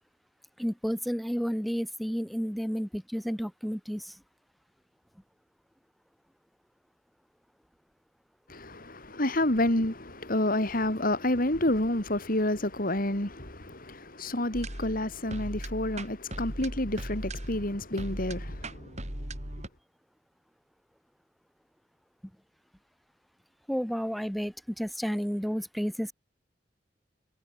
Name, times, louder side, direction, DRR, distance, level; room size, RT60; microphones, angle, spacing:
voice 1, 0.6-4.1 23.7-26.1, equal, ahead, 6.4 m, -31 dB
voice 2, 8.5-18.9, left 1 dB, 50° left, 3.9 m, -29 dB
sound 1, 14.5-19.7, right 1 dB, 40° right, 6.0 m, -38 dB
head